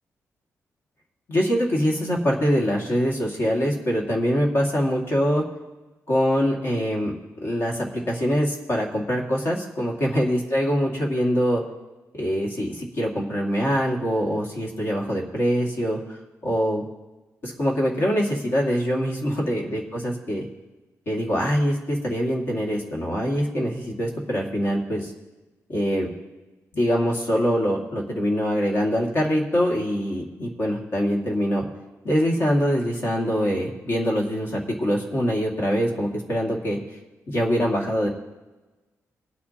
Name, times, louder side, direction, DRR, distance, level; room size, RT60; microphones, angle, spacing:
voice 1, 1.3-5.4 6.1-7.1 7.4-11.6 12.1-16.8 17.4-20.5 21.1-25.1 25.7-26.1 26.7-31.6 32.0-36.8 37.3-38.1, equal, 40° left, -1 dB, 2.2 m, -24 dB
23.0 x 8.3 x 2.9 m, 1.1 s
wide cardioid pair, 175°, 6 cm